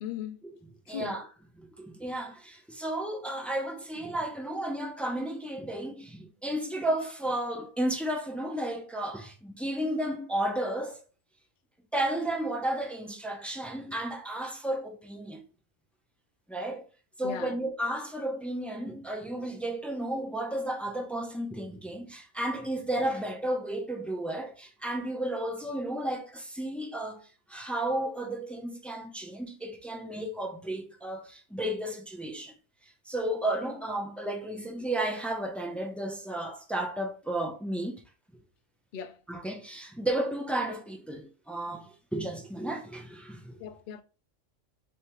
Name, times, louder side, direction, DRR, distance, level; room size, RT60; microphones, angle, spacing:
voice 1, 0.0-0.4 0.9-1.2 17.2-17.6 38.9-39.2 43.6-44.0, left 8 dB, 55° left, 0.6 m, -37 dB
voice 2, 0.9-1.3 1.6-11.0 11.9-15.4 16.5-16.8 17.2-32.5 33.1-38.0 39.3-43.6, right 1 dB, ahead, 0.4 m, -33 dB
4.6 x 3.2 x 3.0 m
omnidirectional pair, 1.3 m